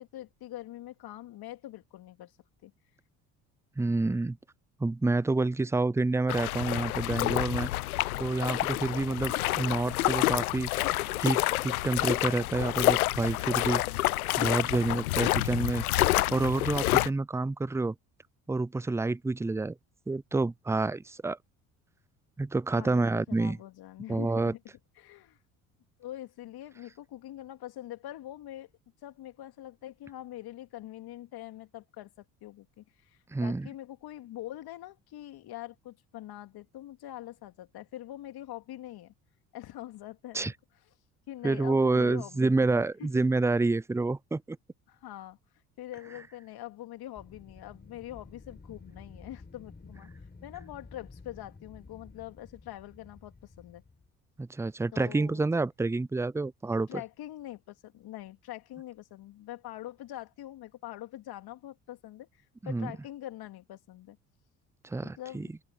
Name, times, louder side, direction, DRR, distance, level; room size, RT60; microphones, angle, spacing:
voice 1, 0.0-2.3 2.6-2.7 13.9-14.0 22.7-24.6 25.0-25.4 26.0-28.7 29.0-39.1 39.5-40.5 41.3-43.3 44.9-45.4 45.8-50.1 50.4-53.8 54.9-55.4 56.9-64.2 65.0-65.5, left 14 dB, 60° left, 2.7 m, -44 dB
voice 2, 3.8-4.4 4.8-7.7 8.2-10.7 11.2-13.8 14.4-15.8 16.3-17.9 18.5-19.8 20.1-21.4 22.4-23.6 24.1-24.5 33.3-33.7 40.3-40.5 41.4-44.6 54.4-56.9 62.6-62.9 64.8-65.5, right 3 dB, 5° right, 0.5 m, -28 dB
sound 1, 6.3-17.1, left 17 dB, 85° left, 0.8 m, -28 dB
Wind, 47.1-54.1, left 3 dB, 25° left, 6.2 m, -51 dB
open air
hypercardioid pair, 55°, 42 cm